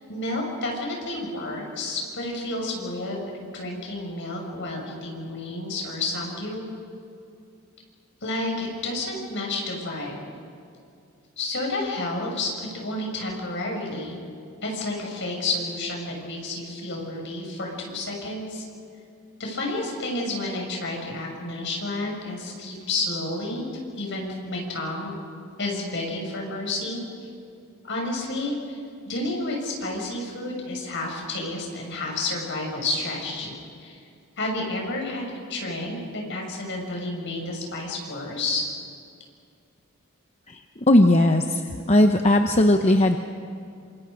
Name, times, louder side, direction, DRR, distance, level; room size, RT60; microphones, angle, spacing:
voice 1, 0.1-6.6 8.2-10.2 11.4-14.2 14.6-18.6 19.4-23.7 23.9-25.1 25.6-27.3 27.9-28.8 29.0-34.0 34.4-35.2 35.5-38.7, left 2 dB, 55° left, 0 dB, 6.4 m, -30 dB
voice 2, 40.5-41.6 41.9-43.2, left 1 dB, 30° left, 5 dB, 0.8 m, -18 dB
27.5 x 27.0 x 5.2 m, 2.4 s
head